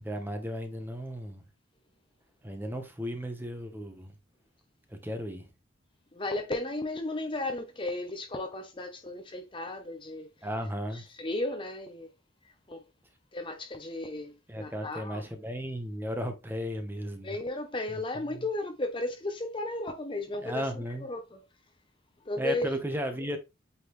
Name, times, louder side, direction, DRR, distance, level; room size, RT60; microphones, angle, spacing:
voice 1, 0.0-1.4 2.4-4.1 4.9-5.5 10.4-11.0 14.5-17.3 18.3-18.4 20.4-21.1 22.4-23.4, equal, 10° right, 1.0 m, -35 dB
voice 2, 6.1-10.3 10.9-12.1 12.7-12.8 13.3-15.2 17.2-21.4 22.2-22.7, left 2 dB, 25° left, 0.8 m, -34 dB
8.4 x 3.9 x 3.1 m
head